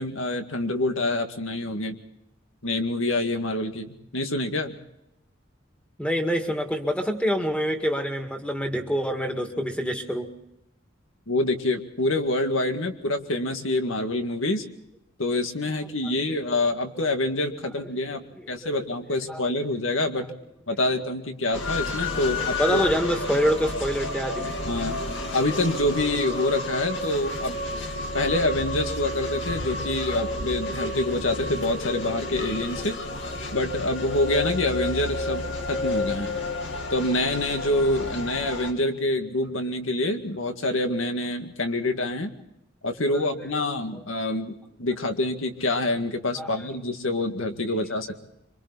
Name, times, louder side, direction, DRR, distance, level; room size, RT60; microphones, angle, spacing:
voice 1, 0.0-2.0 2.6-4.7 11.3-14.6 15.2-20.3 20.7-22.8 24.7-27.6 28.1-33.0 33.5-35.4 35.7-36.4 36.9-42.3 42.8-48.2, left 2 dB, 85° left, 6 dB, 2.0 m, -26 dB
voice 2, 6.0-10.3 18.6-18.8 19.3-19.4 22.1-22.2 22.6-24.4 30.2-30.3 43.1-43.2 46.4-46.6, equal, 5° left, 4 dB, 2.1 m, -26 dB
sound 1, 21.5-38.7, left 2 dB, 65° left, 2.7 m, -31 dB
26.5 x 24.5 x 4.2 m, 0.84 s
head